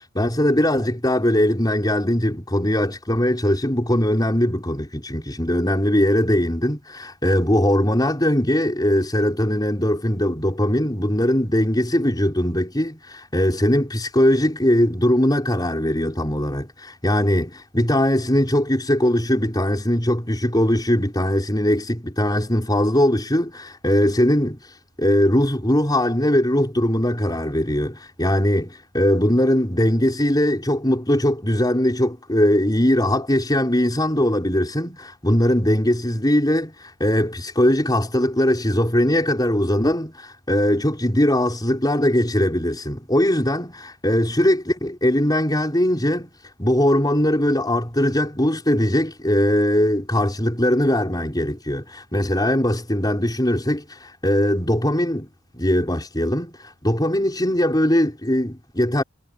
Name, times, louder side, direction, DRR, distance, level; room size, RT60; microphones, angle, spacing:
voice 1, 0.1-24.6 25.0-46.3 46.6-55.3 55.5-59.0, left 1 dB, 20° left, 5.6 m, -20 dB
head